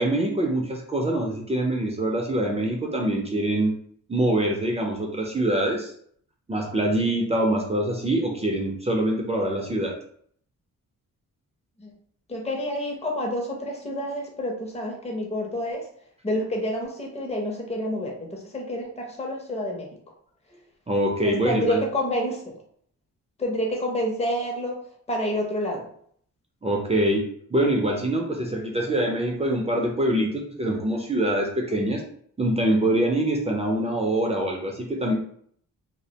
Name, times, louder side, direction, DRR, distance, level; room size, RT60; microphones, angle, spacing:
voice 1, 0.0-3.7 4.1-5.9 6.5-9.9 20.9-21.8 26.6-32.0 32.4-35.1, right 1 dB, 20° right, 0 dB, 0.4 m, -24 dB
voice 2, 12.3-15.8 16.2-19.9 21.2-22.6 23.4-24.8 25.1-25.9, left 1 dB, 20° left, 0 dB, 0.6 m, -28 dB
2.3 x 2.1 x 2.7 m, 0.62 s
cardioid pair, 100°, 33 cm